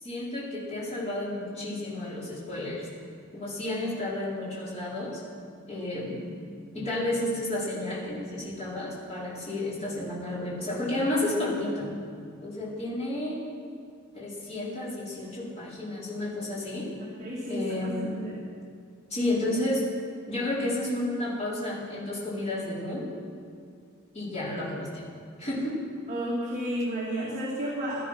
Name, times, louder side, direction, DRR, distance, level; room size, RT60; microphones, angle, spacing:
voice 1, 0.0-2.9 3.3-5.2 5.7-6.3 6.7-11.9 12.4-13.4 14.1-16.9 17.5-18.2 19.1-19.8 20.3-23.1 24.1-25.0 25.4-25.8, left 1 dB, 30° left, -7 dB, 4.5 m, -31 dB
voice 2, 17.0-18.4 26.1-28.1, equal, 35° right, -6 dB, 2.4 m, -32 dB
16.5 x 12.5 x 5.8 m, 2.2 s
head